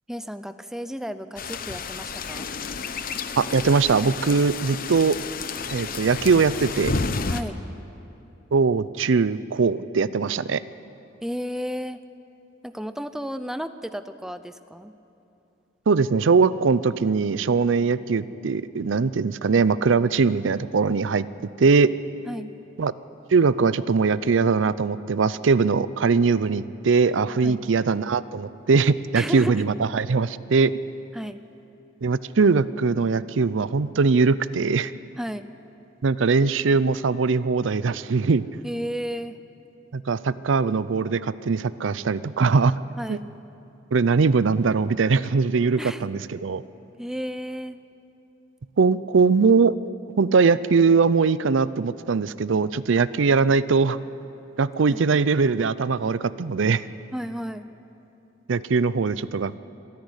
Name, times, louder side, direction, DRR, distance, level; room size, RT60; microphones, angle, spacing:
voice 1, 0.1-2.5 7.3-7.6 11.2-12.0 12.6-14.9 22.3-22.5 27.4-27.6 29.1-29.7 31.1-31.4 35.2-35.5 38.6-39.4 43.0-43.3 45.8-46.1 47.0-47.8 54.9-55.0 57.1-57.7, equal, 5° right, 11 dB, 0.5 m, -33 dB
sound 1, 1.4-7.4, left 4 dB, 50° left, 0.8 m, -31 dB
voice 2, 3.4-5.2 5.7-7.0 8.5-10.6 15.9-21.3 21.6-21.9 22.8-22.9 23.3-30.7 32.0-34.9 36.0-38.4 39.9-42.7 43.1-43.2 43.9-46.6 48.8-49.7 50.2-54.0 54.6-56.8 58.5-59.6, right 4 dB, 80° right, 16 dB, 0.5 m, -21 dB
26.0 x 10.5 x 9.9 m, 2.9 s
head